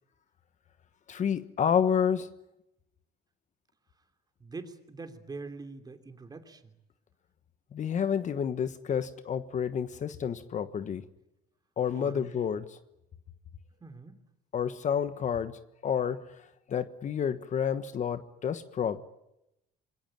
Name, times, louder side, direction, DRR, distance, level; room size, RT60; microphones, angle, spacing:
voice 1, 1.1-2.3 7.7-11.0 11.8-12.8 14.5-16.4 16.7-19.0, left 8 dB, 45° left, 12 dB, 1.3 m, -30 dB
voice 2, 4.4-6.7 11.9-12.3 13.8-14.2, right 3 dB, 25° right, 7 dB, 3.0 m, -44 dB
27.0 x 22.0 x 9.0 m, 0.86 s
cardioid pair, 110°, 17 cm